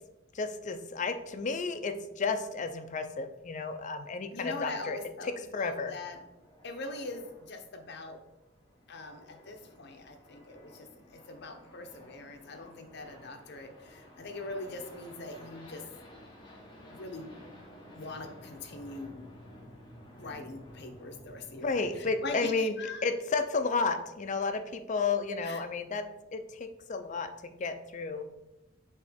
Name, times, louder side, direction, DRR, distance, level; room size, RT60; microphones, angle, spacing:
voice 1, 0.3-5.0 5.5-5.9 21.6-22.7 23.0-26.0 26.3-28.3, left 4 dB, 40° left, 8 dB, 0.5 m, -32 dB
voice 2, 4.3-6.2 6.6-8.2 8.9-15.8 16.9-17.4 17.9-19.2 20.2-23.1 25.4-25.6, left 2 dB, 60° left, 4 dB, 0.8 m, -42 dB
sound 1, 5.6-22.4, equal, 25° left, 1.2 m, -53 dB
6.5 x 3.1 x 5.0 m, 0.93 s
head